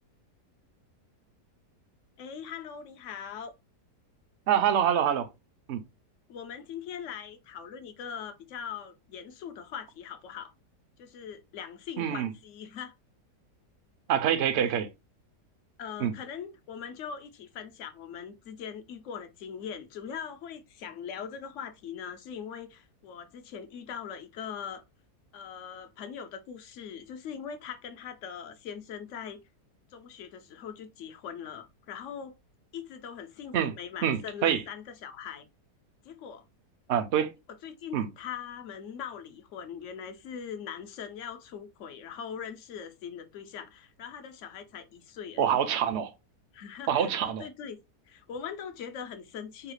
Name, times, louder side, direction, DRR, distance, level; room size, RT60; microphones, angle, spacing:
voice 1, 2.2-3.5 6.3-10.5 11.0-12.9 14.6-14.7 15.8-24.8 25.3-29.4 29.9-32.3 32.7-35.5 36.0-36.4 37.6-45.5 46.5-47.1 47.4-47.8 48.1-49.7, left 7 dB, 65° left, 0.8 m, -41 dB
voice 2, 4.5-5.3 5.7-5.8 12.0-12.3 14.1-14.9 16.0-16.1 33.5-33.7 34.0-34.6 36.9-37.3 37.9-38.1 45.4-46.1 46.9-47.5, right 9 dB, 65° right, 0.7 m, -26 dB
4.7 x 2.3 x 3.2 m
omnidirectional pair, 1.7 m